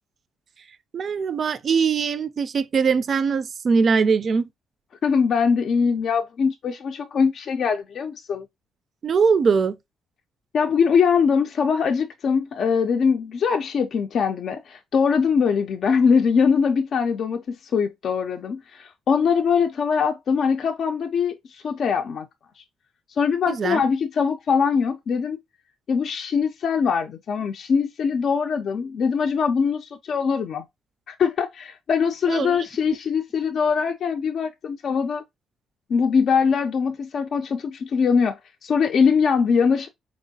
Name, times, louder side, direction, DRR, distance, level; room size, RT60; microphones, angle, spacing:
voice 1, 0.9-4.5 9.0-9.7 23.5-23.8 32.3-32.6, right 5 dB, 50° right, 0.4 m, -21 dB
voice 2, 5.0-8.5 10.5-22.3 22.6-22.7 23.2-25.4 25.9-30.6 31.1-35.2 35.9-39.9, left 6 dB, 60° left, 0.4 m, -22 dB
4.4 x 2.9 x 2.7 m
cardioid pair, 90°, 0 cm